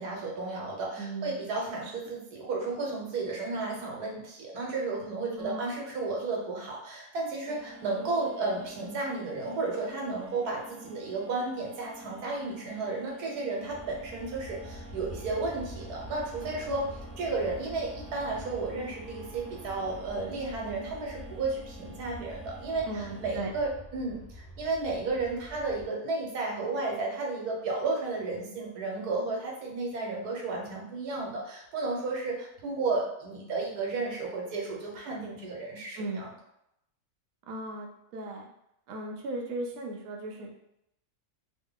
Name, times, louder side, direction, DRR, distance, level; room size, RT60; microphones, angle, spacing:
voice 1, 0.0-36.3, right 3 dB, 85° right, -1 dB, 1.4 m, -33 dB
voice 2, 1.0-1.5 1.8-1.9 5.4-5.7 10.9-11.0 18.7-19.0 22.9-23.5 35.9-36.2 37.5-38.5 38.9-40.6, right 2 dB, 70° right, 1 dB, 0.9 m, -37 dB
sound 1, 7.4-23.3, right 1 dB, 50° left, 1.1 m, -49 dB
Aircraft, 13.7-25.9, equal, 30° right, 0.6 m, -46 dB
2.9 x 2.2 x 3.7 m, 0.80 s
omnidirectional pair, 1.6 m